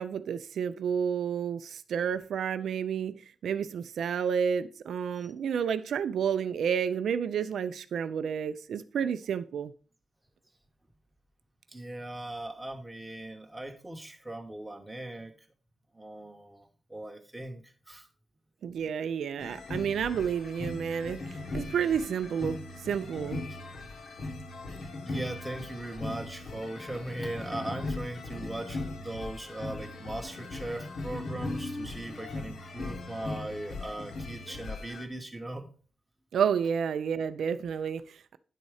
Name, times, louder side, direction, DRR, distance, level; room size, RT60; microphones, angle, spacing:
voice 1, 0.0-3.2 3.4-9.7 18.6-23.4 36.3-38.4, right 7 dB, 80° right, 0.4 m, -30 dB
voice 2, 11.7-15.3 15.9-18.1 23.5-23.6 25.0-35.7, right 1 dB, 5° right, 0.9 m, -39 dB
sound 1, 19.4-35.0, left 2 dB, 55° left, 0.9 m, -39 dB
9.9 x 4.1 x 4.8 m
wide cardioid pair, 170°, 0 cm